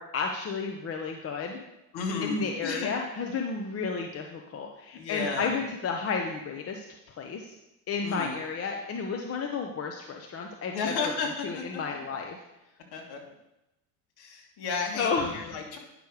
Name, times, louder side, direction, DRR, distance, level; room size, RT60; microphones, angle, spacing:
voice 1, 0.0-1.6 2.2-6.8 7.2-7.5 7.9-11.1 11.4-12.4 15.0-15.4, left 5 dB, 30° left, 2 dB, 0.9 m, -32 dB
voice 2, 1.9-2.9 4.9-5.6 8.0-8.4 10.7-12.0 12.9-13.2 14.2-15.8, left 4 dB, 50° left, 0 dB, 2.6 m, -33 dB
10.0 x 6.6 x 4.9 m, 0.91 s
supercardioid pair, 115°, 49 cm